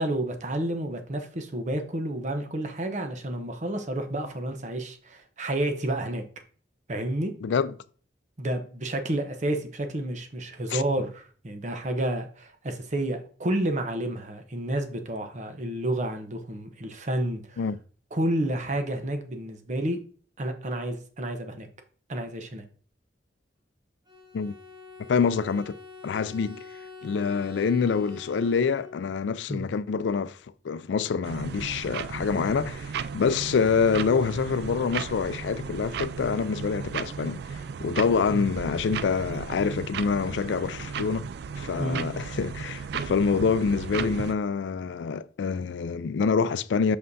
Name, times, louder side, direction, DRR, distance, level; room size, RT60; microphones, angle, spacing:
voice 1, 0.0-6.2 6.9-7.3 8.4-17.6 18.1-20.0 20.4-21.7 22.1-22.6 29.5-29.6 38.3-38.4 41.8-42.1, right 1 dB, 45° right, 0.8 m, -30 dB
voice 2, 7.4-7.7 10.7-10.8 17.6-17.8 24.3-24.5 25.1-25.8 26.0-26.6 27.0-30.4 30.6-41.3 41.5-47.0, left 5 dB, 90° left, 0.4 m, -26 dB
Bowed string instrument, 24.1-29.3, left 4 dB, 25° right, 1.1 m, -46 dB
sound 1, 31.2-44.3, right 6 dB, 65° right, 0.3 m, -35 dB
6.4 x 5.5 x 2.6 m
head